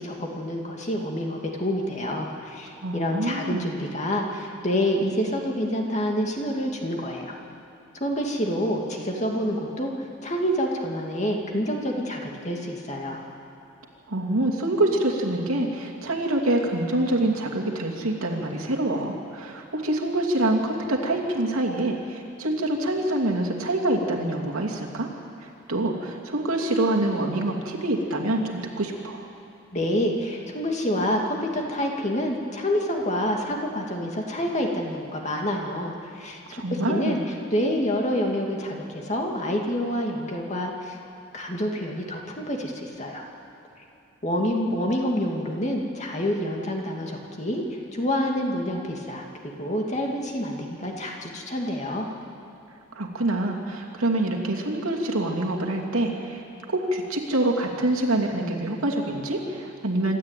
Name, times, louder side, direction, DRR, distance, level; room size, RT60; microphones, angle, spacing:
voice 1, 0.0-7.4 8.0-13.2 29.7-36.4 36.7-37.2 37.5-41.0 41.3-43.2 44.2-47.6 47.9-52.1, equal, 35° left, 1 dB, 2.4 m, -27 dB
voice 2, 2.8-3.7 14.1-25.1 25.4-29.2 36.5-37.2 52.9-56.4 56.7-60.2, right 1 dB, 85° right, 0 dB, 2.7 m, -26 dB
26.0 x 12.5 x 9.1 m, 2.8 s
head